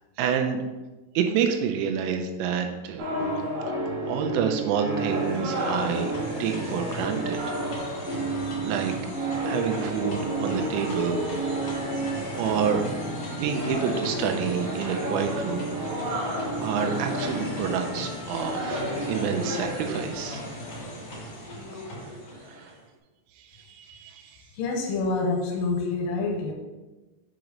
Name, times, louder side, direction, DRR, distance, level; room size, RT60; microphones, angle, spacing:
voice 1, 0.2-0.6 1.2-3.1 3.7-6.1 6.4-7.4 7.8-8.0 8.7-8.9 9.4-11.9 12.4-12.9 13.4-15.7 16.1-20.4 22.5-22.7 23.7-24.3, right 7 dB, 85° right, 5 dB, 3.2 m, -28 dB
sound 1, 3.0-19.8, right 1 dB, 70° right, 3.8 m, -31 dB
sound 2, 4.8-22.8, equal, 60° left, 1.6 m, -37 dB
voice 2, 24.6-26.5, left 3 dB, 80° left, 1 dB, 3.3 m, -27 dB
7.7 x 2.9 x 5.1 m, 1.1 s
omnidirectional pair, 5.8 m